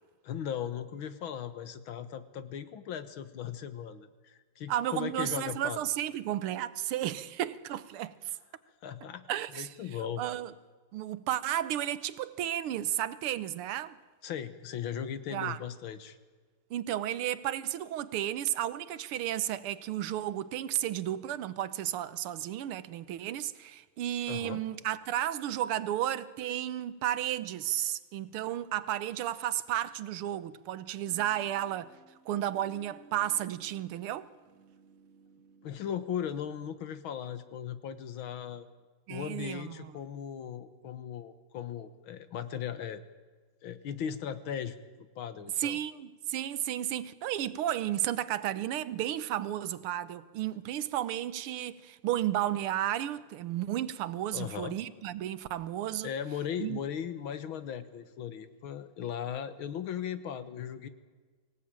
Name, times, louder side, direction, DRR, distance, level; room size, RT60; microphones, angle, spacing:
voice 1, 0.2-5.8 8.8-9.3 9.5-10.2 14.2-16.2 24.3-24.6 35.6-38.7 39.1-43.0 43.6-44.8 45.2-45.8 54.3-54.8 56.0-60.9, left 8 dB, 70° left, 2.0 m, -37 dB
voice 2, 4.7-8.4 9.3-9.7 10.2-10.5 10.9-14.0 15.3-15.6 16.7-31.9 32.3-34.3 39.1-39.9 45.6-56.1 56.6-56.8, right 12 dB, 80° right, 1.8 m, -33 dB
sound 1, 31.1-36.6, right 4 dB, 5° left, 4.1 m, -59 dB
24.5 x 17.5 x 8.9 m
omnidirectional pair, 2.4 m